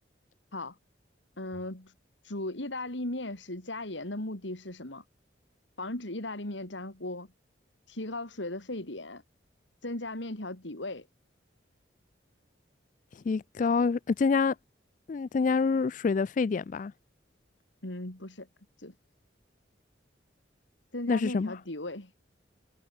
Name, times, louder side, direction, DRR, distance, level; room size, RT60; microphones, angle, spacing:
voice 1, 1.4-1.9 2.2-5.0 5.8-7.3 7.9-9.2 9.8-11.1 17.8-18.5 18.8-18.9 20.9-22.1, left 1 dB, 80° left, 3.5 m, -37 dB
voice 2, 13.3-14.5 15.1-16.9 21.1-21.5, left 4 dB, 45° left, 0.3 m, -26 dB
head